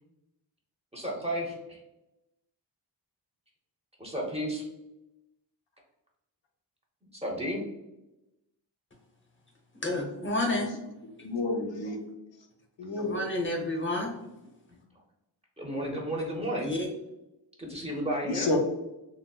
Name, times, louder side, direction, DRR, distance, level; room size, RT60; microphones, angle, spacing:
voice 1, 0.9-1.8 4.0-4.6 7.1-7.6 15.6-16.7 17.6-18.5, equal, 15° right, -2 dB, 0.7 m, -32 dB
voice 2, 9.8-10.8 13.0-14.1 16.6-16.9, left 2 dB, 25° left, 1 dB, 0.7 m, -30 dB
voice 3, 11.2-12.0 12.8-13.2 18.3-18.6, left 2 dB, 85° left, 1 dB, 0.7 m, -30 dB
3.9 x 2.1 x 2.3 m, 0.92 s
wide cardioid pair, 110°, 43 cm